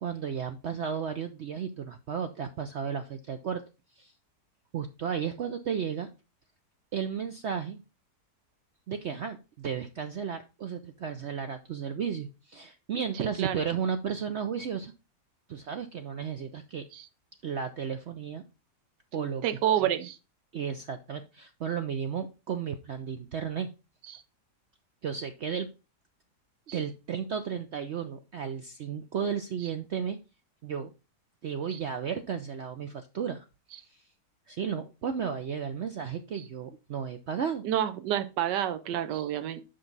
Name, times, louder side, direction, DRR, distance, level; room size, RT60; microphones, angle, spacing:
voice 1, 0.0-3.6 4.0-4.1 4.7-6.1 6.9-7.8 8.9-14.9 15.5-16.9 17.4-18.4 19.1-19.9 20.5-23.7 25.0-25.7 26.7-30.2 30.6-30.9 31.4-33.4 33.9-34.0 34.5-37.6, right 7 dB, 65° right, 7 dB, 0.7 m, -34 dB
voice 2, 19.4-20.2 24.1-24.2 26.7-26.8 31.7-31.8 37.6-39.6, right 11 dB, 85° right, 9 dB, 1.3 m, -28 dB
6.5 x 5.9 x 3.9 m, 0.29 s
omnidirectional pair, 1.8 m